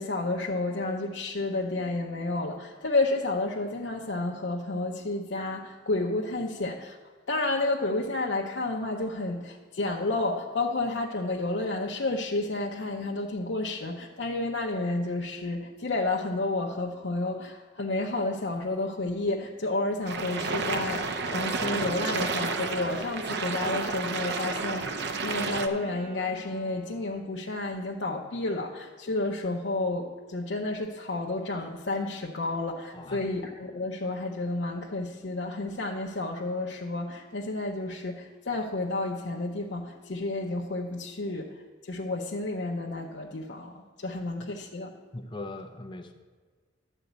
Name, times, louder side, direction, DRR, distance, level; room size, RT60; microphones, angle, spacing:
voice 1, 0.0-7.0 7.3-41.5 41.9-44.9, left 2 dB, 65° left, -1 dB, 0.6 m, -31 dB
sound 1, 20.1-25.7, right 4 dB, 60° right, 0.7 m, -31 dB
Wind instrument woodwind instrument, 20.4-27.4, right 1 dB, 80° right, 1.5 m, -44 dB
voice 2, 32.9-33.3 45.1-46.1, left 2 dB, 25° left, 6 dB, 0.6 m, -40 dB
12.0 x 4.0 x 7.9 m, 1.5 s
head